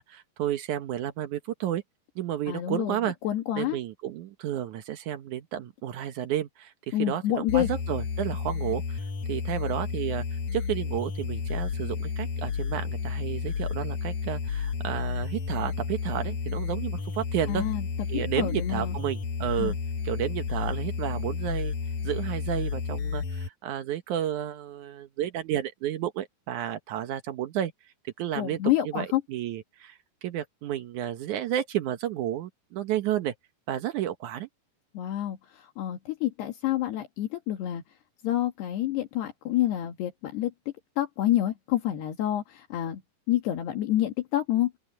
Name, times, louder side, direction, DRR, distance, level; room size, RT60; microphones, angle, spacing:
voice 1, 0.0-1.8 2.2-3.2 3.6-17.7 18.1-19.7 20.0-21.7 22.0-27.7 28.0-28.6 28.9-33.3 33.7-34.5, right 11 dB, 70° right, 1.9 m, -32 dB
voice 2, 2.5-3.8 6.9-7.7 17.5-17.9 18.1-19.0 19.6-19.8 28.4-29.2 34.9-37.8 38.2-40.5 41.0-43.0 43.3-44.7, left 13 dB, 75° left, 4.0 m, -28 dB
sound 1, 7.5-23.5, left 5 dB, 60° left, 2.2 m, -31 dB
open air
omnidirectional pair, 4.8 m